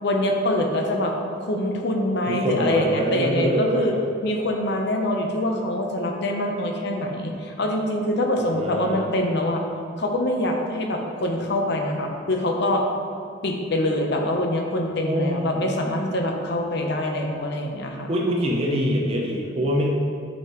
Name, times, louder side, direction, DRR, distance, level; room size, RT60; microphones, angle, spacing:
voice 1, 0.0-1.1 1.4-3.9 4.2-9.6 10.0-12.8 13.4-18.1, left 1 dB, 60° left, 2 dB, 0.8 m, -24 dB
voice 2, 2.3-4.0 8.4-9.1 15.1-15.6 18.1-19.9, equal, 30° right, -2 dB, 0.8 m, -24 dB
9.1 x 5.3 x 3.1 m, 2.3 s
head